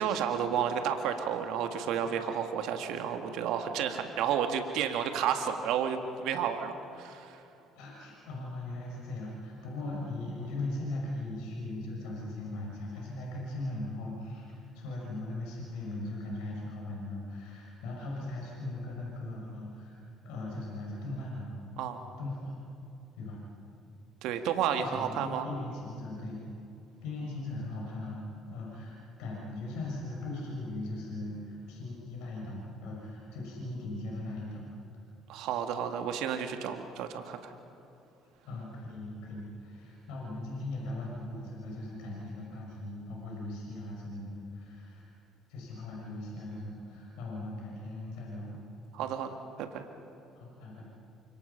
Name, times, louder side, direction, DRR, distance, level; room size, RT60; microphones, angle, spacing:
voice 1, 0.0-7.4 21.8-22.0 24.2-25.5 35.3-37.5 48.9-49.9, right 8 dB, 65° right, 6 dB, 1.8 m, -31 dB
voice 2, 1.9-2.3 7.7-20.0 20.2-21.5 22.2-22.6 23.1-23.4 24.8-26.4 27.0-28.3 28.5-34.7 38.4-45.0 45.5-48.6 50.4-50.9, left 2 dB, 70° left, -3 dB, 6.4 m, -39 dB
28.5 x 26.5 x 5.7 m, 2.7 s
hypercardioid pair, 55°, 0 cm